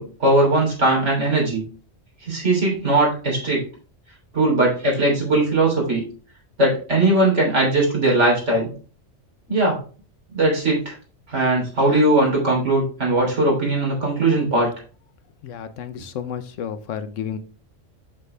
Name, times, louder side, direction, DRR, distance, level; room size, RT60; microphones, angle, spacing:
voice 1, 0.0-1.6 2.2-3.6 4.3-6.0 6.6-8.7 9.5-9.8 10.3-11.0 11.3-14.7, right 2 dB, 70° right, -2 dB, 3.5 m, -19 dB
voice 2, 15.4-17.4, left 8 dB, 85° left, 10 dB, 1.1 m, -31 dB
7.4 x 6.5 x 3.3 m, 0.38 s
omnidirectional pair, 1.3 m